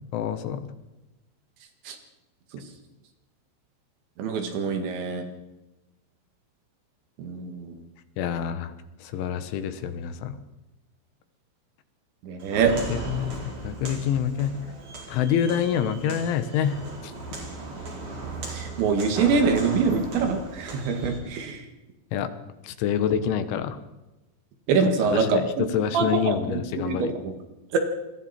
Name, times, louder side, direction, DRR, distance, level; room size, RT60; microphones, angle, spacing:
voice 1, 0.1-0.6 8.2-8.7 9.0-10.4 12.9-14.6 15.1-16.8 17.0-17.1 22.1-22.3 22.6-23.8 25.1-27.1, left 9 dB, 80° left, 10 dB, 3.6 m, -27 dB
voice 2, 4.2-5.2 7.2-7.8 12.2-12.7 18.5-21.7 24.7-25.4 25.9-27.3 27.7-27.8, right 5 dB, 70° right, 5 dB, 4.1 m, -24 dB
Walk footsteps, 12.4-21.2, right 2 dB, 40° right, 5.7 m, -37 dB
27.5 x 22.0 x 4.4 m, 1.0 s
omnidirectional pair, 5.7 m